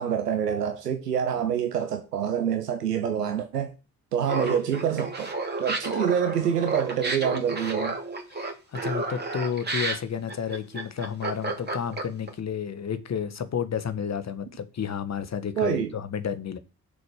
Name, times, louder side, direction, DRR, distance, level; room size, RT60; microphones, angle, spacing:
voice 1, 0.0-3.7 4.1-8.0 15.6-16.0, right 8 dB, 85° right, 0.8 m, -26 dB
Laughter, 4.2-12.3, right 2 dB, 20° right, 3.0 m, -31 dB
voice 2, 8.3-16.6, left 7 dB, 35° left, 1.5 m, -31 dB
6.8 x 5.1 x 6.4 m
figure-of-eight pair, 45°, 47 cm